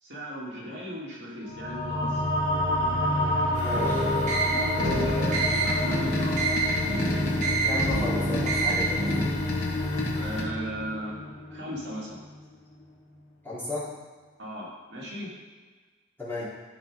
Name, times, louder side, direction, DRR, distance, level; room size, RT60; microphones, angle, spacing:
voice 1, 0.0-2.2 4.4-6.5 10.1-11.2 11.5-12.1 14.4-15.3 16.3-16.4, equal, 60° right, -5 dB, 2.5 m, -37 dB
sound 1, 1.5-12.4, left 1 dB, 55° left, 1.9 m, -29 dB
sound 2, 3.5-10.4, left 2 dB, 75° left, 2.0 m, -34 dB
voice 2, 3.6-4.0 7.6-9.3 13.4-13.9 16.2-16.4, left 2 dB, 10° left, -11 dB, 3.1 m, -34 dB
sound 3, 3.7-9.3, right 2 dB, 35° right, 1.6 m, -28 dB
12.5 x 5.3 x 4.9 m, 1.4 s
head